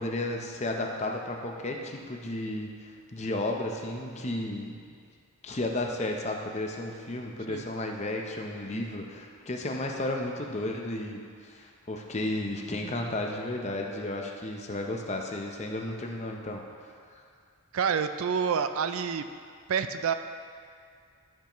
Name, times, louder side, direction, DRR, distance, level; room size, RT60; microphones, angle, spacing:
voice 1, 0.0-4.8 5.4-17.2, left 1 dB, 30° left, 1 dB, 0.7 m, -33 dB
voice 2, 17.7-19.2 19.7-20.1, right 6 dB, 70° right, 10 dB, 0.4 m, -28 dB
14.0 x 5.8 x 3.1 m, 2.2 s
head